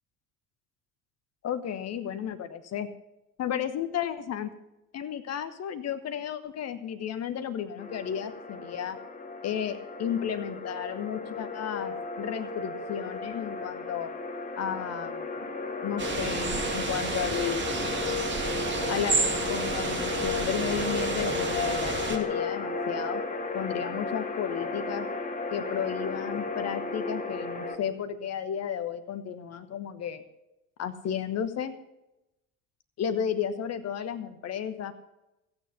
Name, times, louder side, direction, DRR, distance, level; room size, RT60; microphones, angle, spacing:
voice 1, 1.4-2.9 3.4-4.5 4.9-9.0 9.4-14.1 14.6-15.4 15.8-17.6 18.9-23.2 23.5-25.1 25.5-30.2 30.8-31.7 33.0-34.9, left 8 dB, 40° left, 10 dB, 1.2 m, -33 dB
sound 1, 7.8-27.7, left 3 dB, 20° left, 1.8 m, -34 dB
sound 2, 16.0-22.2, right 3 dB, 25° right, 2.3 m, -31 dB
15.5 x 8.9 x 5.7 m, 0.92 s
figure-of-eight pair, 60°, 42 cm